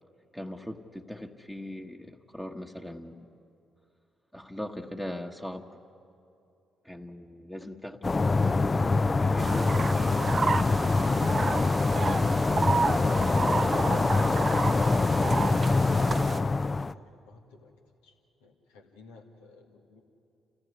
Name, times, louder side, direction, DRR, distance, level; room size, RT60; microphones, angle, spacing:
voice 1, 0.3-3.3 4.3-5.7 6.8-10.5, left 1 dB, 10° left, 1 dB, 1.3 m, -40 dB
sound 1, 8.0-16.9, left 3 dB, 30° left, 0.5 m, -25 dB
sound 2, 9.4-16.4, right 4 dB, 40° right, 0.5 m, -31 dB
voice 2, 13.6-17.7 18.0-20.0, left 3 dB, 90° left, 2 dB, 1.9 m, -50 dB
28.5 x 15.0 x 9.6 m, 2.7 s
hypercardioid pair, 55°, 0 cm